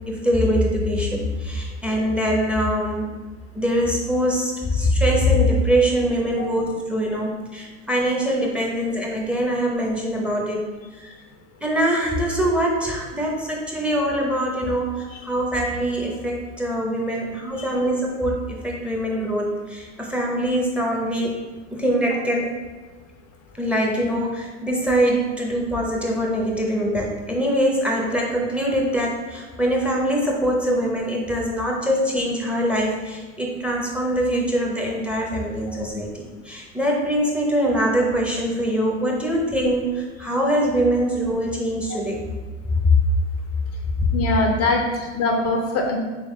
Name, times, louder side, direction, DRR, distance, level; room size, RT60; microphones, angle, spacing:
voice 1, 0.1-3.1 3.5-10.6 11.0-11.1 11.6-21.3 21.7-22.5 23.6-42.2 42.7-42.9, equal, 5° right, -1 dB, 0.7 m, -23 dB
voice 2, 44.1-46.0, left 2 dB, 40° left, 2 dB, 0.5 m, -23 dB
3.5 x 3.1 x 3.1 m, 1.3 s
hypercardioid pair, 85°, 37 cm